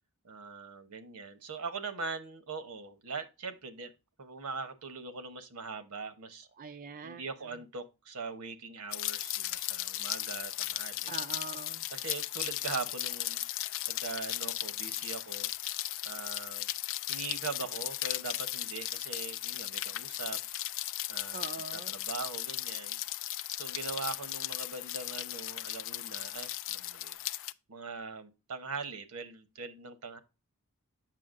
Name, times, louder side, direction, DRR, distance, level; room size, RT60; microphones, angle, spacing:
voice 1, 0.2-3.9 4.2-6.5 7.0-11.1 11.9-13.4 13.9-15.5 16.0-16.7 17.1-20.4 21.1-21.4 21.7-23.0 23.5-27.2 27.7-30.2, right 4 dB, 75° right, 0.9 m, -41 dB
voice 2, 6.6-7.2 11.1-11.8 21.3-21.9, right 5 dB, 40° right, 0.4 m, -43 dB
Rain, 8.9-27.5, left 15 dB, 60° left, 0.3 m, -36 dB
7.6 x 6.0 x 2.5 m
head